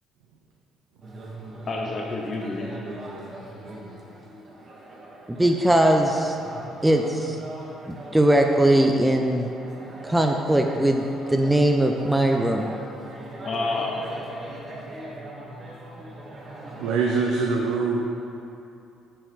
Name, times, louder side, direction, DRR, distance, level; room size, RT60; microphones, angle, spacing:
sound 1, 1.0-17.1, right 1 dB, 40° right, 1.1 m, -40 dB
voice 1, 1.7-2.8 13.4-14.4, left 3 dB, 45° left, -1 dB, 0.6 m, -29 dB
voice 2, 5.3-6.4 6.8-7.4 7.9-9.5 10.0-12.7, right 1 dB, 10° right, 3 dB, 0.4 m, -20 dB
voice 3, 16.8-18.0, right 4 dB, 85° right, -1 dB, 0.4 m, -23 dB
5.9 x 4.7 x 3.5 m, 2.7 s
supercardioid pair, 75°, 0 cm